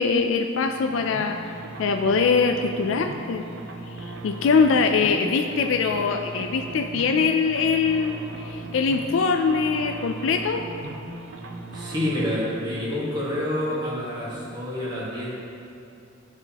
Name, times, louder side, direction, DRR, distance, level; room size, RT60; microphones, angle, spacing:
voice 1, 0.0-1.5 1.8-3.4 4.0-10.7, left 5 dB, 65° left, 5 dB, 0.3 m, -23 dB
sound 1, 0.6-14.7, right 2 dB, 60° right, 0.6 m, -39 dB
voice 2, 11.7-15.3, left 1 dB, 20° right, -8 dB, 1.5 m, -28 dB
12.0 x 4.9 x 2.8 m, 2.6 s
head